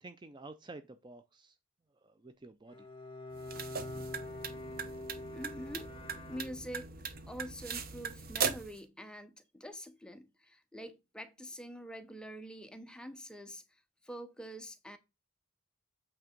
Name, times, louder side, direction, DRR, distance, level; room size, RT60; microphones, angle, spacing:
voice 1, 0.0-1.6 2.0-2.9, right 2 dB, 20° right, 0.4 m, -50 dB
Bowed string instrument, 2.7-7.1, left 2 dB, 25° left, 1.6 m, -45 dB
sound 1, 3.3-8.8, right 6 dB, 50° right, 1.0 m, -39 dB
voice 2, 5.3-5.9 6.3-6.9 7.3-13.6 14.0-15.0, equal, 5° left, 0.8 m, -45 dB
8.5 x 3.4 x 5.2 m
head